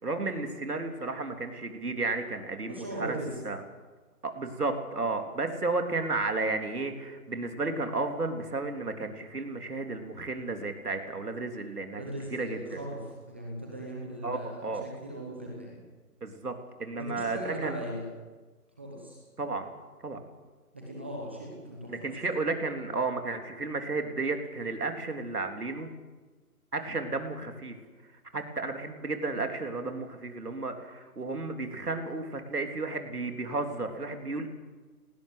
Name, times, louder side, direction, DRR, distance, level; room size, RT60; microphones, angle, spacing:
voice 1, 0.0-3.2 3.4-3.6 4.2-12.0 12.3-12.8 14.2-14.8 16.2-16.5 16.8-17.8 19.4-19.7 20.0-20.2 21.9-25.9 26.7-27.7 28.3-34.5, right 3 dB, 75° right, 5 dB, 3.6 m, -33 dB
voice 2, 2.7-3.4 12.0-15.8 17.0-18.1 18.8-19.2 20.7-21.9, right 1 dB, 10° right, -2 dB, 1.0 m, -38 dB
19.0 x 19.0 x 8.2 m, 1.3 s
figure-of-eight pair, 165°, 46 cm